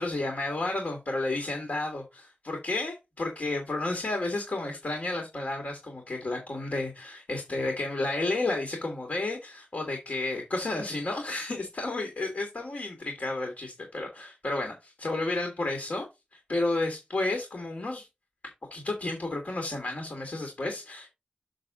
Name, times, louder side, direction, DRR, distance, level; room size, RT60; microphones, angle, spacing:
voice 1, 0.0-16.1 16.3-18.1 18.7-21.1, left 2 dB, 70° left, 2.2 m, -32 dB
6.6 x 6.1 x 3.8 m
wide cardioid pair, 60°, 3 cm